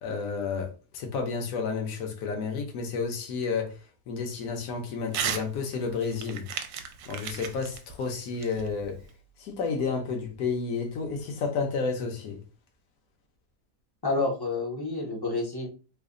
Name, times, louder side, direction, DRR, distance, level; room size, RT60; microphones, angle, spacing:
voice 1, 0.0-3.8 4.1-6.5 7.1-9.0 9.4-12.4, left 5 dB, 65° left, 1.2 m, -31 dB
Crumpling crinkling / Tearing, 5.1-5.5 5.8-9.1, right 8 dB, 75° right, 1.1 m, -35 dB
voice 2, 14.0-15.7, left 3 dB, 25° left, 0.5 m, -29 dB
3.2 x 2.2 x 3.7 m
omnidirectional pair, 1.8 m